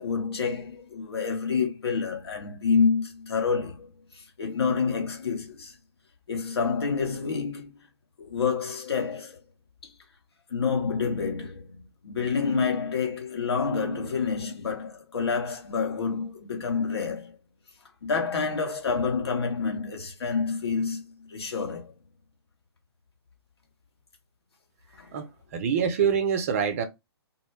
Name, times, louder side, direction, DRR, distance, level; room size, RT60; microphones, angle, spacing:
voice 1, 0.0-3.9 4.1-5.7 6.3-7.7 8.2-9.4 10.5-17.3 18.0-21.9 25.0-25.1, left 5 dB, 65° left, 1.0 m, -28 dB
voice 2, 25.1-26.8, right 7 dB, 30° right, 0.4 m, -25 dB
2.2 x 2.1 x 3.1 m
figure-of-eight pair, 130°, 14 cm